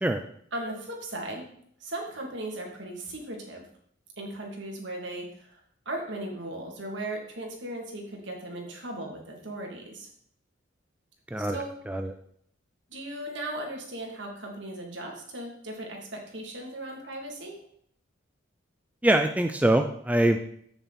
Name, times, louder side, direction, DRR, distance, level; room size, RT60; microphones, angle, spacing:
voice 1, 0.5-1.4 1.8-3.6 4.2-5.6 5.8-10.1 11.4-11.7 12.9-17.6, right 1 dB, 60° right, 0 dB, 2.9 m, -37 dB
voice 2, 11.3-12.1 19.0-20.4, right 1 dB, 5° right, 6 dB, 0.5 m, -24 dB
14.5 x 6.9 x 4.4 m, 0.66 s
head